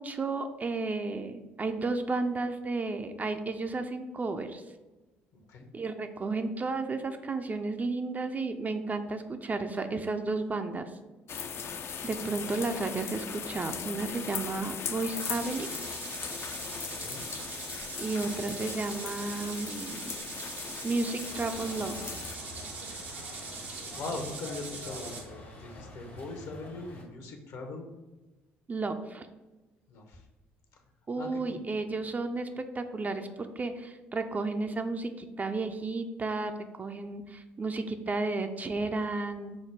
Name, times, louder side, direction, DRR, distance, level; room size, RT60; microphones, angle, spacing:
voice 1, 0.0-4.6 5.7-10.9 12.0-15.7 18.0-20.1 20.8-22.0 28.7-29.3 31.1-36.5 36.8-39.6, right 3 dB, 25° right, 7 dB, 0.4 m, -33 dB
voice 2, 5.3-5.7 16.9-17.2 23.9-27.9 29.9-30.3 31.2-31.6, left 3 dB, 60° left, 3 dB, 0.8 m, -41 dB
sound 1, 11.3-22.4, left 6 dB, 40° left, 0.4 m, -39 dB
sound 2, 15.2-25.2, right 3 dB, 80° right, 0.8 m, -41 dB
sound 3, 21.3-27.0, left 1 dB, 80° left, 1.1 m, -47 dB
5.1 x 2.1 x 4.5 m, 1.1 s
hypercardioid pair, 55°, 6 cm